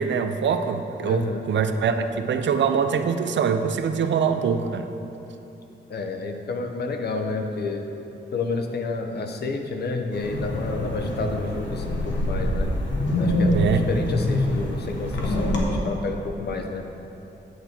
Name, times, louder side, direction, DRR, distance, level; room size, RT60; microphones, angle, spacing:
voice 1, 0.0-4.9 13.5-13.9, right 6 dB, 80° right, 8 dB, 0.5 m, -23 dB
voice 2, 1.0-1.4 5.9-7.8 8.3-12.8 13.2-16.8, left 3 dB, 60° left, 4 dB, 0.8 m, -30 dB
Wind, 10.1-15.6, left 1 dB, 90° left, 1.4 m, -25 dB
9.4 x 8.2 x 4.4 m, 3.0 s
wide cardioid pair, 170°, 19 cm